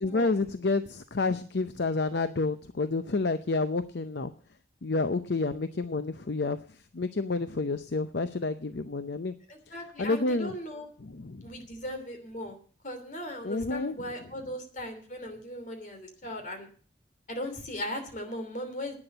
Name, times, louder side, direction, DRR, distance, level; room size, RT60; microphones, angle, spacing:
voice 1, 0.0-4.3 4.8-9.3 10.0-10.5 11.0-11.5 13.4-14.2, left 3 dB, 60° left, 11 dB, 0.6 m, -29 dB
voice 2, 9.5-10.9 11.4-12.6 12.8-16.7 17.3-18.9, left 1 dB, 40° left, 6 dB, 2.9 m, -38 dB
11.0 x 9.8 x 8.0 m, 0.43 s
head